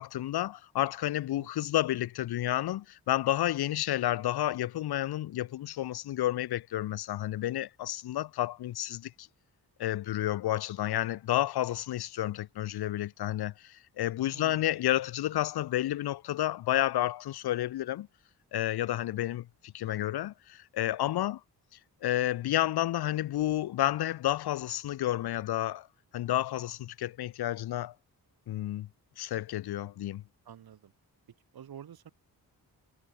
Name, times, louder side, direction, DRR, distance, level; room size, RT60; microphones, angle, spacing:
voice 1, 0.0-9.3 9.8-18.1 18.5-21.4 22.0-25.9 26.1-27.9 28.5-28.9 29.2-30.2, left 13 dB, 75° left, 0.6 m, -31 dB
voice 2, 1.4-1.7 14.3-14.8 21.0-21.1 30.4-30.9 31.5-32.1, right 9 dB, 70° right, 1.8 m, -49 dB
wide cardioid pair, 130°, 38 cm